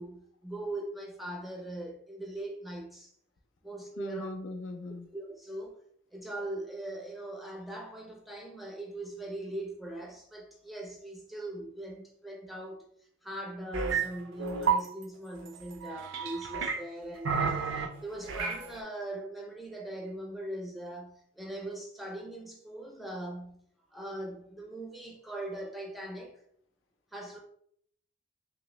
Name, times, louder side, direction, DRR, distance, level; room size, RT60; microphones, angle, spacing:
voice 1, 0.0-3.1 3.6-4.3 5.1-5.7 6.1-12.8 13.2-23.6 23.9-26.4 27.1-27.4, right 1 dB, ahead, 0.4 m, -40 dB
voice 2, 4.0-5.1, left 1 dB, 75° left, 0.5 m, -39 dB
sound 1, 13.7-14.1 14.4-14.8 15.8-16.8 17.2-17.9 18.3-18.6, right 6 dB, 75° right, 0.5 m, -30 dB
3.0 x 2.8 x 3.1 m
head